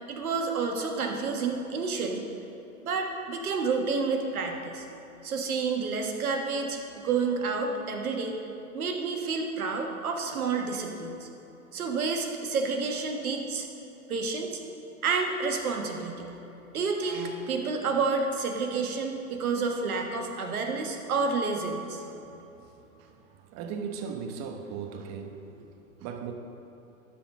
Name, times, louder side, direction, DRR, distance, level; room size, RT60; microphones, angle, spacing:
voice 1, 0.1-2.3 2.8-4.8 5.2-8.4 8.7-11.3 11.7-13.7 14.1-14.5 15.0-16.3 16.7-22.0, right 4 dB, 80° right, 3 dB, 1.4 m, -29 dB
voice 2, 23.5-25.4 26.0-26.3, right 6 dB, 35° right, 5 dB, 1.0 m, -36 dB
11.5 x 4.1 x 6.0 m, 3.0 s
hypercardioid pair, 120°, 43 cm